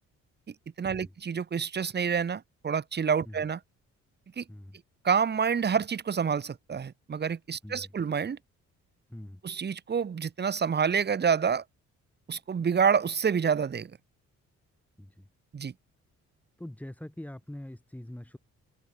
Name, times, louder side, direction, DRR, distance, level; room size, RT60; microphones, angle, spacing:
voice 1, 0.8-3.6 4.4-4.5 5.0-8.4 9.4-11.6 12.3-13.9 15.5-15.7, right 6 dB, 35° right, 1.2 m, -28 dB
voice 2, 9.1-9.4 15.0-15.3 16.6-18.4, left 1 dB, 5° left, 2.9 m, -43 dB
cardioid pair, 90°, 30 cm